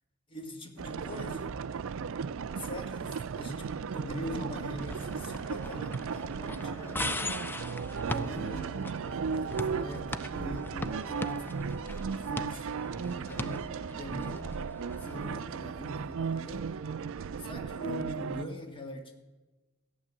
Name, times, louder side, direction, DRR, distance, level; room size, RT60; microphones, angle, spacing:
voice 1, 0.3-1.5 2.6-7.2 8.1-12.7 13.0-14.5 15.0-16.8 17.4-19.1, equal, 25° left, 3 dB, 1.7 m, -42 dB
sound 1, 0.8-18.5, right 6 dB, 65° right, 0.4 m, -36 dB
sound 2, 4.8-15.3, left 2 dB, 10° left, 0.4 m, -40 dB
14.5 x 9.7 x 7.4 m, 1.2 s
head